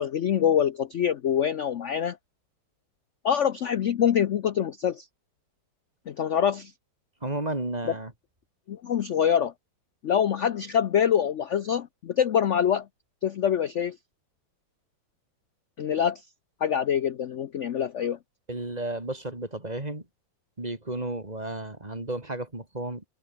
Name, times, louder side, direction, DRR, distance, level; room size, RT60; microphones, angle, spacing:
voice 1, 0.0-2.2 3.2-5.1 6.1-6.7 8.7-9.5 10.0-12.9 13.2-14.0 15.8-16.2 16.6-18.2, left 8 dB, 75° left, 0.6 m, -25 dB
voice 2, 7.2-8.1 18.5-20.0 20.6-23.1, right 2 dB, 20° right, 3.5 m, -33 dB
omnidirectional pair, 2.1 m